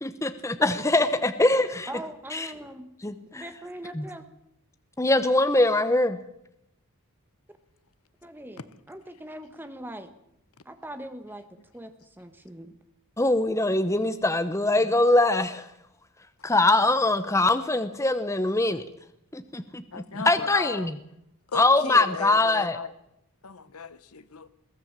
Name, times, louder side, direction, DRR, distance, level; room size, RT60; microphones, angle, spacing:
voice 1, 0.0-1.9 2.3-2.5 3.0-3.4 3.9-4.1 5.0-6.2 13.2-15.7 16.4-18.8 19.3-19.8 20.1-20.9 21.5-22.8, left 2 dB, 15° left, 10 dB, 0.8 m, -23 dB
voice 2, 1.9-2.9 3.3-4.2 8.2-8.6 8.9-10.1 10.6-11.4 11.7-11.9 12.2-12.7, right 1 dB, 10° right, 8 dB, 1.4 m, -40 dB
voice 3, 19.9-20.9 21.5-22.9 23.4-24.5, left 5 dB, 85° left, 15 dB, 1.1 m, -36 dB
22.0 x 16.5 x 7.4 m, 0.81 s
head